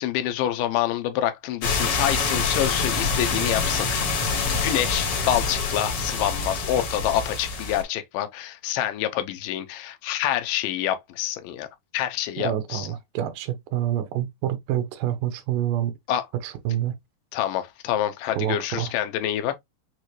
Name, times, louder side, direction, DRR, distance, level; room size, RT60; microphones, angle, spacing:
voice 1, 0.0-11.7 11.9-12.9 16.1-16.2 17.3-19.6, left 12 dB, 80° left, 2.3 m, -27 dB
sound 1, 1.6-7.8, left 4 dB, 55° left, 1.8 m, -26 dB
voice 2, 12.4-15.9 16.4-16.9 18.4-18.9, right 11 dB, 80° right, 2.5 m, -27 dB
6.4 x 2.5 x 3.1 m
omnidirectional pair, 3.9 m